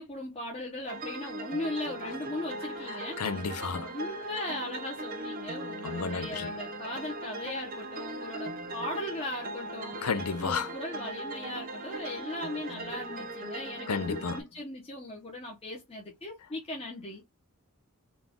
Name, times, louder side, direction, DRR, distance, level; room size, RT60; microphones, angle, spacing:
voice 1, 0.0-3.5 3.8-10.0 10.4-17.2, left 1 dB, 25° left, 0.9 m, -38 dB
sound 1, 0.9-14.4, right 2 dB, 40° right, 0.8 m, -39 dB
voice 2, 3.2-3.9 5.8-6.5 10.0-10.7 13.9-14.4, left 5 dB, 85° left, 0.6 m, -32 dB
4.1 x 2.4 x 3.6 m
head